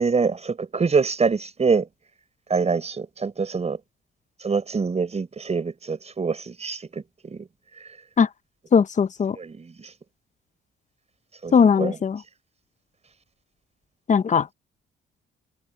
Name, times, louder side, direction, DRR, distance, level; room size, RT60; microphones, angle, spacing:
voice 1, 0.0-1.9 2.5-3.8 4.4-6.9 7.2-7.5 9.3-9.9 11.4-12.0, right 5 dB, 35° right, 5.7 m, -25 dB
voice 2, 8.7-9.4 11.5-12.2 14.1-14.5, left 6 dB, 40° left, 0.9 m, -19 dB
cardioid pair, 90°, 20 cm